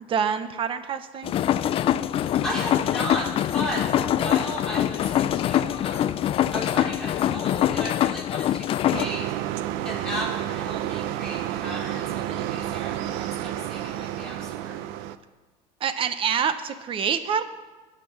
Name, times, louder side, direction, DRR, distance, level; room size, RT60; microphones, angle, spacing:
voice 1, 0.1-1.3 15.8-17.4, right 7 dB, 35° right, 11 dB, 0.9 m, -26 dB
sound 1, 1.2-9.1, left 11 dB, 35° left, 0.4 m, -24 dB
voice 2, 2.3-3.2 3.5-9.5 9.8-14.8, equal, 5° left, -7 dB, 4.8 m, -35 dB
sound 2, 8.9-15.2, right 12 dB, 70° right, 0.6 m, -30 dB
16.5 x 6.0 x 5.9 m, 1.2 s
supercardioid pair, 125°, 16 cm